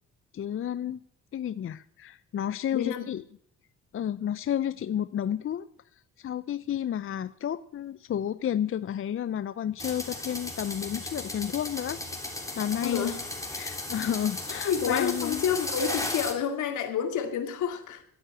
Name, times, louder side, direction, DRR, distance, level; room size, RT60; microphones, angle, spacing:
voice 1, 0.3-1.0 1.3-3.2 3.9-5.7 6.2-12.0 12.6-13.1 13.5-15.4, left 10 dB, 45° left, 15 dB, 0.6 m, -31 dB
voice 2, 2.7-3.1 12.8-13.2 14.7-18.0, left 7 dB, 80° left, 7 dB, 2.4 m, -29 dB
sound 1, 9.8-16.3, left 2 dB, 10° left, 3.3 m, -35 dB
12.5 x 9.8 x 8.9 m, 0.65 s
cardioid pair, 90°, 30 cm